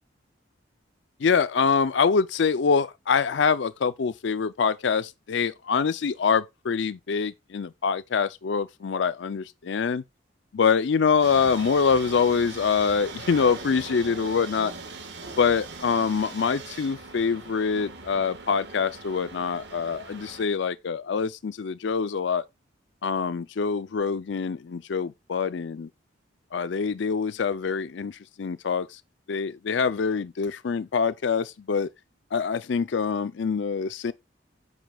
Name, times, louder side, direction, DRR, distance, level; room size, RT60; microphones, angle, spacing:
voice 1, 1.2-10.0 10.5-14.7 15.4-22.4 23.0-25.9 26.5-29.0 29.3-31.9 32.3-34.1, left 5 dB, 65° left, 0.4 m, -25 dB
sound 1, 11.2-20.5, right 3 dB, 60° right, 1.5 m, -40 dB
10.0 x 7.9 x 2.3 m
head